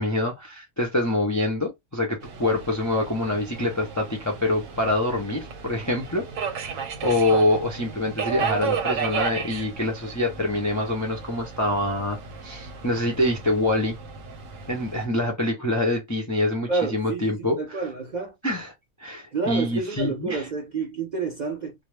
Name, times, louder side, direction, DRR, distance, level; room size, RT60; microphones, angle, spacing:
voice 1, 0.0-14.0 14.7-17.8 18.4-18.7 19.0-20.5, left 1 dB, 30° left, 0.3 m, -25 dB
Subway metro underground, 2.2-15.0, right 6 dB, 85° right, 1.1 m, -34 dB
voice 2, 16.7-18.3 19.3-21.7, right 4 dB, 50° right, 0.5 m, -29 dB
2.3 x 2.0 x 3.1 m
omnidirectional pair, 1.4 m